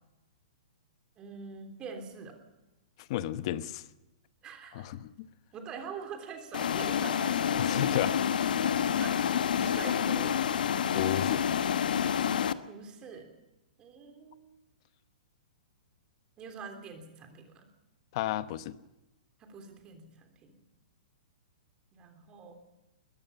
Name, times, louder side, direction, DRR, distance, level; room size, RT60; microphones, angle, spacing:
voice 1, 1.2-2.4 4.4-4.9 5.5-8.2 8.8-9.2 9.5-10.4 12.7-13.3 13.8-14.6 16.4-17.7 19.4-20.5 21.9-22.5, right 5 dB, 20° right, 5 dB, 3.3 m, -45 dB
voice 2, 3.1-3.8 4.7-5.3 7.6-8.1 10.9-11.4 18.1-18.7, left 12 dB, 35° left, 14 dB, 1.0 m, -32 dB
sound 1, 6.5-12.5, left 8 dB, 75° left, 1.2 m, -28 dB
22.5 x 19.0 x 7.1 m, 0.99 s
hypercardioid pair, 165°, 5 cm